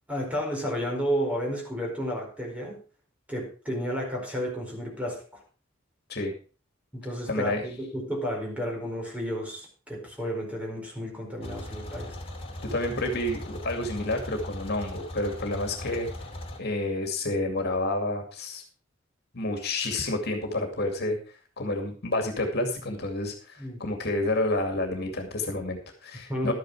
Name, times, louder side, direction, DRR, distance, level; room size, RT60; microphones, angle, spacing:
voice 1, 0.1-2.8 3.3-5.4 6.9-12.2 23.6-23.8 26.3-26.5, equal, 5° right, -1 dB, 4.7 m, -32 dB
voice 2, 7.3-7.6 12.6-16.1 16.6-18.6 19.3-21.2 21.6-26.5, left 2 dB, 55° left, 4 dB, 2.4 m, -29 dB
sound 1, 11.4-16.6, left 1 dB, 30° left, 2.7 m, -39 dB
12.5 x 9.3 x 4.8 m, 0.37 s
head